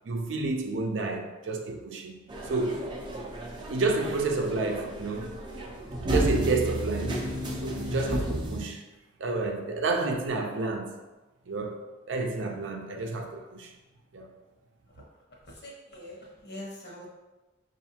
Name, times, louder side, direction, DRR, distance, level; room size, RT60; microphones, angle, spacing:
voice 1, 0.0-2.2 2.5-2.8 3.7-5.4 6.0-7.3 7.6-8.8 9.2-10.9 11.5-13.7 14.1-14.3, right 3 dB, 75° right, 0.5 m, -30 dB
sound 1, 2.3-8.6, right 1 dB, 25° right, 0.5 m, -32 dB
voice 2, 15.5-17.1, left 1 dB, 60° left, 1.1 m, -43 dB
5.7 x 2.5 x 2.8 m
head